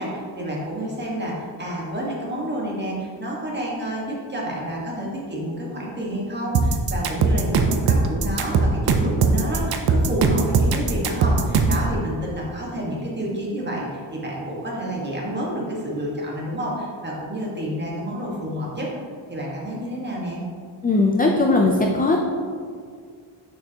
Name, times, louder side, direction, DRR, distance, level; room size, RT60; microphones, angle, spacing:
voice 1, 0.0-18.9 19.3-20.4, right 1 dB, 20° right, -4 dB, 1.4 m, -29 dB
sound 1, 6.5-11.9, right 4 dB, 55° right, 0.6 m, -19 dB
voice 2, 20.8-22.2, left 2 dB, 20° left, 1 dB, 0.3 m, -18 dB
6.5 x 5.8 x 2.8 m, 2.1 s
wide cardioid pair, 125°, 47 cm